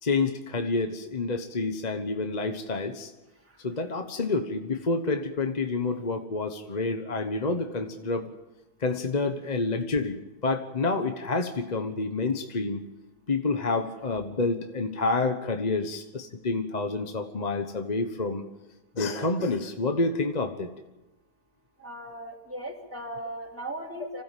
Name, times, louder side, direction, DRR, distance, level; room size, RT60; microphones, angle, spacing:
voice 1, 0.0-3.1 3.6-8.3 8.8-12.8 13.3-18.4 18.9-20.7, left 3 dB, 30° left, 6 dB, 1.2 m, -28 dB
voice 2, 21.8-24.2, right 1 dB, 10° right, 0 dB, 2.9 m, -37 dB
26.0 x 15.5 x 7.6 m, 1.0 s
omnidirectional pair, 1.7 m